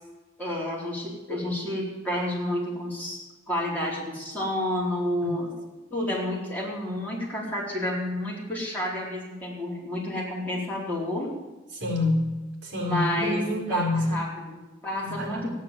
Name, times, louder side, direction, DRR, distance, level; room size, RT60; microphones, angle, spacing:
voice 1, 0.4-3.2 3.5-5.5 5.9-11.3 12.8-15.5, left 1 dB, 10° left, -6 dB, 4.5 m, -30 dB
voice 2, 11.7-14.1 15.0-15.5, left 2 dB, 60° right, 0 dB, 4.6 m, -28 dB
15.5 x 10.5 x 7.6 m, 1.2 s
head